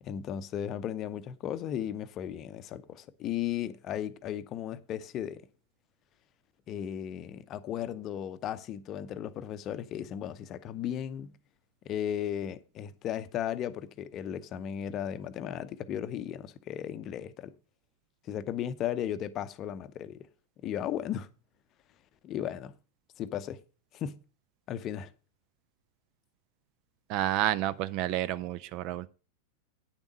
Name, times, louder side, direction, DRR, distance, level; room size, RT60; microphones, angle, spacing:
voice 1, 0.0-5.4 6.7-11.3 11.8-17.5 18.2-20.3 20.6-21.3 22.2-22.7 23.2-23.6 23.9-24.2 24.7-25.1, left 10 dB, 35° left, 0.7 m, -35 dB
voice 2, 27.1-29.1, right 13 dB, 40° right, 0.4 m, -30 dB
9.7 x 7.1 x 5.3 m
figure-of-eight pair, 90°, 0 cm